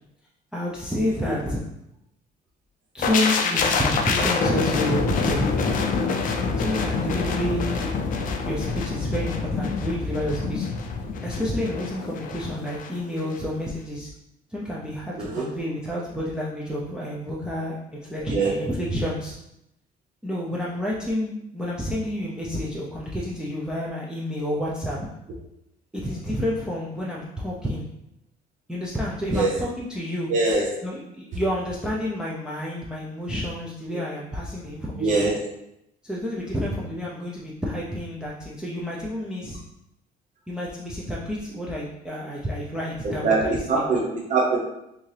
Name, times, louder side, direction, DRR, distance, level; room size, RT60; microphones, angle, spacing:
voice 1, 0.5-1.6 2.9-5.7 6.6-7.9 8.4-10.7 11.2-14.1 14.5-19.3 20.2-25.1 25.9-27.9 28.7-30.3 30.8-35.2 36.0-39.6 40.5-43.8, left 1 dB, 5° right, -5 dB, 0.6 m, -29 dB
sound 1, 3.0-12.9 13.2-13.4, left 4 dB, 50° left, 0.5 m, -26 dB
voice 2, 15.2-15.5 18.3-18.5 29.3-29.5 30.3-30.8 33.9-34.0 34.9-35.5 43.0-44.6, right 3 dB, 50° right, -3 dB, 0.8 m, -23 dB
3.4 x 2.7 x 3.3 m, 0.82 s
cardioid pair, 110°, 17 cm